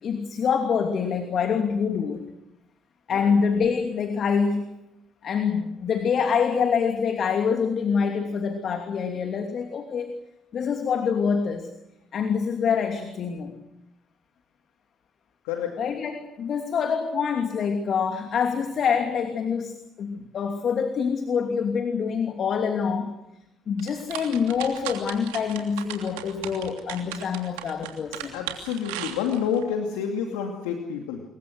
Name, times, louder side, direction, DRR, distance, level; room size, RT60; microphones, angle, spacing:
voice 1, 0.0-2.2 3.1-4.7 5.2-10.1 10.5-11.7 12.1-13.5 15.8-23.1 23.7-28.3, left 6 dB, 55° left, 5 dB, 2.8 m, -25 dB
voice 2, 15.4-15.8 28.3-31.2, left 7 dB, 75° left, 3 dB, 2.5 m, -29 dB
sound 1, 23.8-29.6, right 12 dB, 80° right, 3.1 m, -36 dB
27.5 x 22.5 x 6.4 m, 0.90 s
hypercardioid pair, 50°, 0 cm